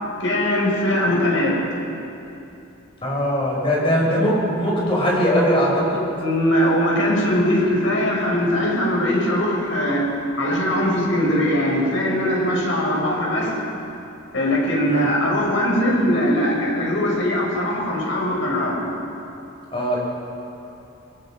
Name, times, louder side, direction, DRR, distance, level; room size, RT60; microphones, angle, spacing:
voice 1, 0.2-1.7 6.2-10.1 10.4-13.5 14.3-18.9, equal, 75° left, -2 dB, 6.2 m, -21 dB
voice 2, 3.0-6.0 14.8-15.1 19.7-20.0, equal, 30° left, -4 dB, 6.2 m, -20 dB
25.5 x 21.5 x 5.3 m, 2.7 s
head